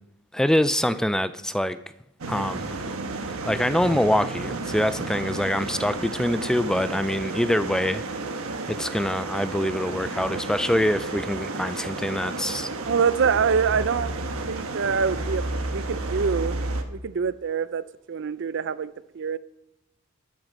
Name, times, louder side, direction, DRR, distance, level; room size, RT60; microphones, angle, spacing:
voice 1, 0.3-1.8 2.3-2.8 3.4-8.0 8.7-12.7, left 1 dB, 5° left, 0.3 m, -24 dB
sound 1, 2.2-16.8, right 2 dB, 85° right, 1.3 m, -32 dB
voice 2, 12.8-14.1 14.5-15.5 15.7-16.6 16.9-19.4, right 6 dB, 60° right, 0.5 m, -25 dB
12.5 x 9.2 x 5.4 m
head